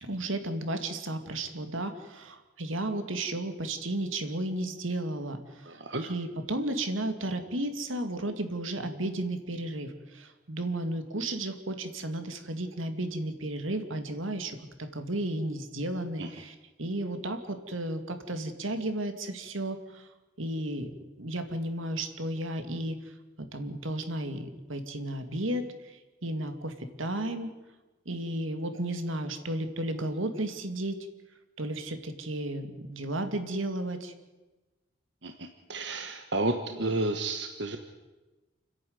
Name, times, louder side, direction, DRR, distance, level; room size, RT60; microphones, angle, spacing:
voice 1, 0.0-20.1 20.4-23.0 23.4-27.5 28.1-31.0 31.6-34.1, right 1 dB, 80° right, 8 dB, 2.3 m, -33 dB
voice 2, 5.7-6.1 16.2-16.3 35.2-37.8, right 2 dB, 60° right, 6 dB, 1.3 m, -31 dB
29.5 x 10.5 x 9.6 m, 1.2 s
head